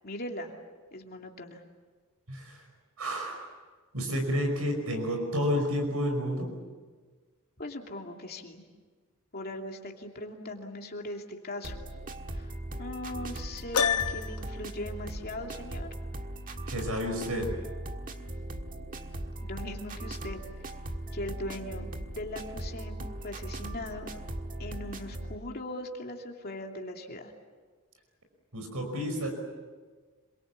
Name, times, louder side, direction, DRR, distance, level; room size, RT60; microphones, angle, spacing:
voice 1, 0.0-0.5 0.9-1.6 7.6-8.6 9.3-11.8 12.3-12.5 12.8-15.9 19.0-19.1 19.4-20.4 21.1-24.1 24.6-27.3, left 1 dB, 45° left, 2 dB, 2.7 m, -39 dB
voice 2, 2.3-2.6 3.0-3.5 3.9-6.5 16.7-17.5 28.5-29.3, equal, 75° right, 3 dB, 5.4 m, -30 dB
sound 1, 11.6-25.4, right 1 dB, 40° right, 1.6 m, -39 dB
Piano, 13.7-14.6, left 7 dB, 85° left, 0.9 m, -28 dB
27.5 x 22.5 x 8.4 m, 1.4 s
head